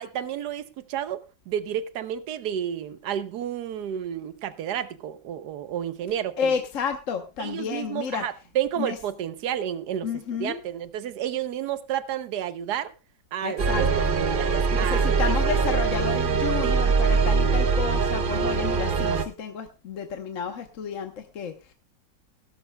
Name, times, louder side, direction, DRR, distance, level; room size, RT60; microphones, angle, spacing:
voice 1, 0.0-6.5 7.4-10.1 10.4-12.9 13.3-13.9 14.3-15.0 16.6-16.7, right 10 dB, 65° right, 13 dB, 1.3 m, -31 dB
voice 2, 6.4-8.2 8.8-9.0 10.0-10.6 13.4-14.1 14.7-21.7, left 6 dB, 50° left, 5 dB, 1.2 m, -31 dB
sound 1, 13.6-19.2, right 5 dB, 50° right, 0.6 m, -23 dB
17.5 x 12.5 x 2.2 m, 0.29 s
omnidirectional pair, 2.0 m